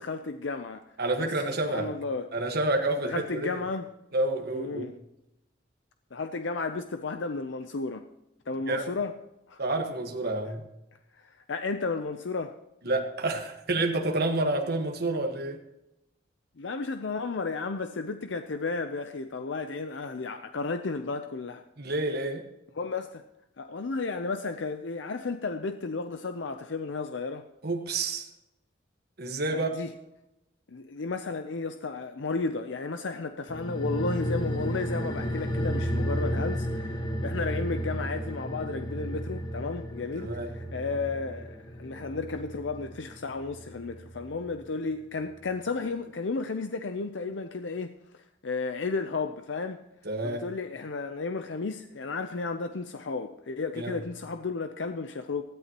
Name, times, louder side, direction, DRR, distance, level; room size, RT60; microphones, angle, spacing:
voice 1, 0.0-0.8 1.2-2.3 3.0-3.9 4.5-5.0 6.1-8.1 8.5-9.2 9.5-9.6 11.1-12.6 16.6-21.6 22.8-23.2 23.6-27.5 29.5-29.9 30.7-49.8 50.2-55.4, left 4 dB, 75° left, 0.6 m, -33 dB
voice 2, 1.0-1.9 2.3-3.6 4.1-4.9 8.7-9.0 9.6-10.6 12.8-15.6 21.8-22.4 27.6-28.3 29.2-29.7 40.1-40.5 50.0-50.4 53.7-54.0, right 2 dB, 60° right, 1.6 m, -29 dB
sound 1, 33.5-44.3 44.6-44.7, equal, 25° left, 1.4 m, -33 dB
19.5 x 14.0 x 3.0 m
head